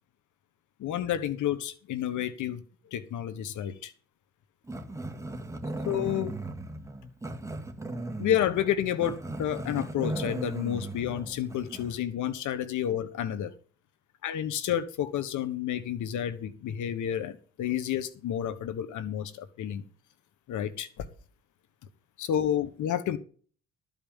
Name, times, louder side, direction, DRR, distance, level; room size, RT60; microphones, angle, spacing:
voice 1, 0.8-2.6 2.9-3.9 5.8-6.4 8.2-13.5 14.2-19.8 20.5-21.1 22.2-23.2, left 10 dB, 80° left, 13 dB, 1.3 m, -30 dB
Growling, 4.7-12.0, right 2 dB, 10° right, 1.9 m, -37 dB
13.5 x 5.5 x 7.2 m, 0.41 s
cardioid pair, 90°, 30 cm